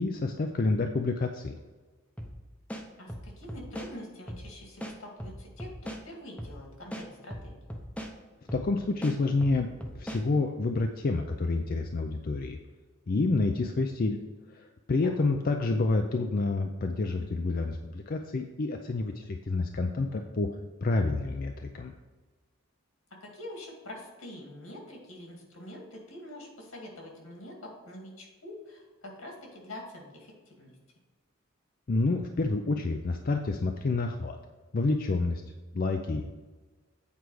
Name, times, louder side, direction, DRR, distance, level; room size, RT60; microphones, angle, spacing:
voice 1, 0.0-1.6 8.5-9.7 9.9-12.6 13.1-14.2 14.5-20.5 20.8-21.9 31.9-34.4 34.7-35.4 35.7-36.3, left 3 dB, 45° left, 4 dB, 0.4 m, -28 dB
sound 1, 2.2-2.4 2.7-3.9 4.3-4.5 4.8-6.0 6.4-6.6 6.9-8.1 8.5-8.7 9.0-10.2, equal, 5° left, 0.7 m, -39 dB
voice 2, 3.0-7.8 15.0-15.1 23.2-30.7, left 1 dB, 75° left, 0 dB, 2.2 m, -45 dB
8.3 x 4.7 x 4.7 m, 1.3 s
head